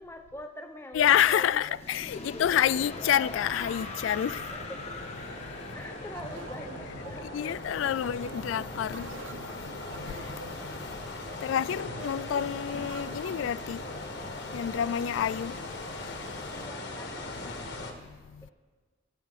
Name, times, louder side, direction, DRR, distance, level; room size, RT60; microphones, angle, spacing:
voice 1, 0.0-1.8 2.1-2.5 4.5-5.0 5.7-8.1 11.6-11.7 16.5-17.7, left 1 dB, 10° left, 0.9 m, -44 dB
voice 2, 0.9-4.4 7.3-9.1 11.4-13.8 14.5-15.5, left 9 dB, 90° left, 0.3 m, -27 dB
sound 1, 1.7-8.6, left 3 dB, 35° left, 1.2 m, -43 dB
sound 2, 2.4-17.9, left 2 dB, 65° left, 1.6 m, -40 dB
sound 3, 6.1-13.6, right 3 dB, 90° right, 0.7 m, -46 dB
23.0 x 8.9 x 3.7 m
head